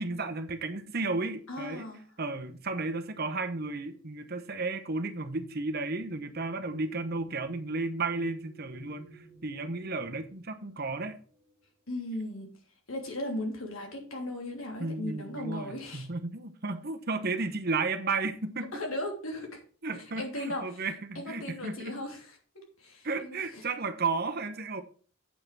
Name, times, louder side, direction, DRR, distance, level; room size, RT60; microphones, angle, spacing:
voice 1, 0.0-1.9 2.2-11.2 14.8-18.7 19.8-22.0 23.0-24.8, right 3 dB, 50° right, 1.1 m, -33 dB
voice 2, 1.5-2.0 11.9-12.5 12.9-16.1 18.7-19.6 20.1-20.9 21.1-22.4 22.8-23.7, left 1 dB, 80° left, 3.0 m, -37 dB
sound 1, 4.0-12.1 13.1-13.2 13.6-14.1, right 2 dB, 35° left, 2.0 m, -55 dB
8.5 x 5.7 x 6.0 m
head